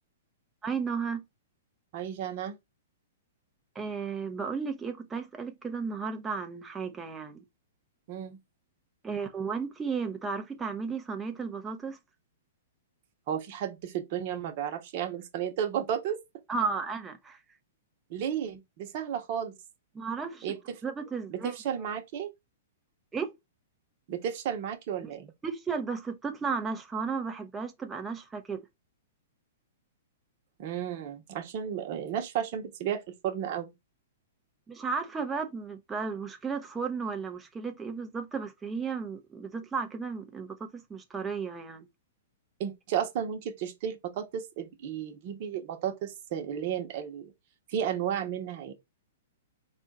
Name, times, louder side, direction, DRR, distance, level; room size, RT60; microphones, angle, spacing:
voice 1, 0.6-1.2 3.7-7.4 9.0-12.0 16.5-17.4 19.9-20.5 20.8-21.5 23.1-23.3 25.4-28.6 34.7-41.9, right 5 dB, 15° right, 0.7 m, -34 dB
voice 2, 1.9-2.5 8.1-8.4 13.3-16.2 18.1-19.5 20.4-20.8 21.3-22.3 24.1-25.3 30.6-33.7 42.6-47.3 47.7-48.7, right 9 dB, 45° right, 1.0 m, -33 dB
4.2 x 2.4 x 4.1 m
hypercardioid pair, 135°, 0 cm